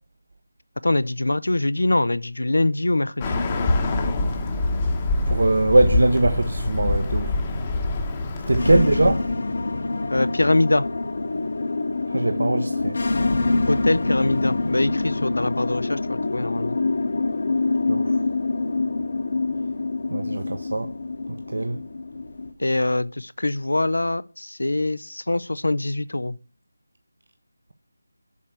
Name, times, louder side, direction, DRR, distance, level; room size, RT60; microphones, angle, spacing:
voice 1, 0.8-3.8 8.7-8.8 10.1-10.9 13.7-16.8 22.6-26.3, left 2 dB, 85° left, 0.5 m, -23 dB
Bird, 3.2-9.3, left 2 dB, 20° left, 0.8 m, -25 dB
voice 2, 5.3-7.3 8.5-9.3 12.1-13.0 17.9-18.1 20.1-20.9 21.5-21.8, right 2 dB, 75° right, 0.9 m, -21 dB
sound 1, 8.6-22.5, left 3 dB, 55° left, 1.1 m, -25 dB
7.2 x 4.6 x 6.6 m
figure-of-eight pair, 170°, 0 cm